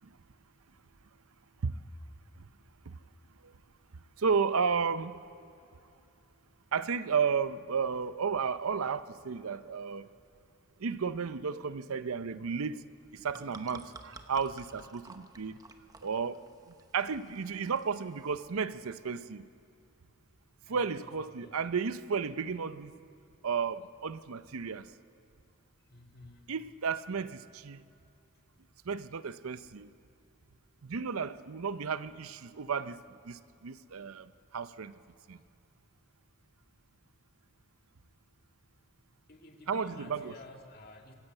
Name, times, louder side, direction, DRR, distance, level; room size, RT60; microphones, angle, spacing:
voice 1, 4.2-5.1 6.7-10.1 10.8-12.8 13.1-15.6 16.0-16.4 16.9-19.5 20.7-22.9 23.4-24.9 26.5-27.8 28.8-29.9 30.8-33.0 33.3-34.9 35.3-35.4 39.7-40.3, right 5 dB, 75° right, 0.6 m, -33 dB
sound 1, 13.0-18.4, right 3 dB, 15° right, 0.8 m, -53 dB
voice 2, 20.6-21.1 21.4-21.6 25.9-26.5 39.3-41.1, left 2 dB, 45° left, 2.0 m, -52 dB
25.5 x 15.5 x 8.1 m
head